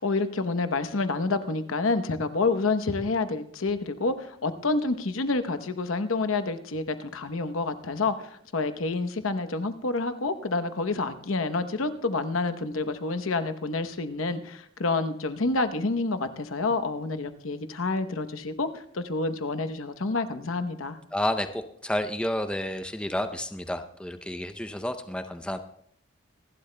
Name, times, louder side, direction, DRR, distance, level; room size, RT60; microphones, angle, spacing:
voice 1, 0.0-21.0, left 3 dB, 85° left, 10 dB, 0.9 m, -28 dB
voice 2, 21.1-25.6, left 1 dB, 5° left, 9 dB, 0.5 m, -30 dB
27.0 x 12.0 x 2.2 m, 0.66 s
head